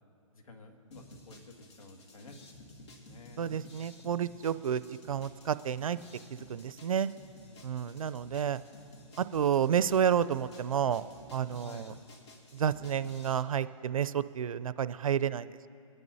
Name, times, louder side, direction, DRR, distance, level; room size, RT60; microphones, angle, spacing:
voice 1, 0.3-2.4 3.1-3.7 7.5-8.2 11.6-12.0, left 3 dB, 85° left, 2 dB, 2.0 m, -52 dB
sound 1, 0.9-13.4, left 1 dB, 55° left, 1.8 m, -54 dB
voice 2, 3.4-6.0 6.3-7.1 7.6-8.6 9.2-11.1 11.3-11.9 12.5-15.7, right 8 dB, 85° right, 15 dB, 0.5 m, -30 dB
21.5 x 10.5 x 2.7 m, 2.6 s
hypercardioid pair, 155°, 17 cm